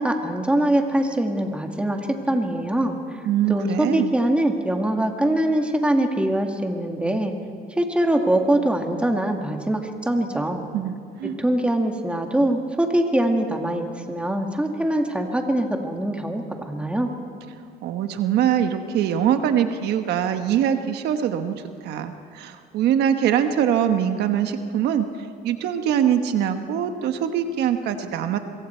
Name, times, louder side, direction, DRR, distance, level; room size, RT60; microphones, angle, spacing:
voice 1, 0.0-2.0 2.3-3.0 3.5-7.3 7.8-10.7 11.2-17.1, right 1 dB, 5° right, 3 dB, 2.1 m, -23 dB
voice 2, 3.2-4.1 10.7-11.3 17.8-21.5 21.8-28.4, right 9 dB, 80° right, 7 dB, 1.3 m, -23 dB
25.5 x 23.0 x 4.5 m, 2.4 s
cardioid pair, 110°, 17 cm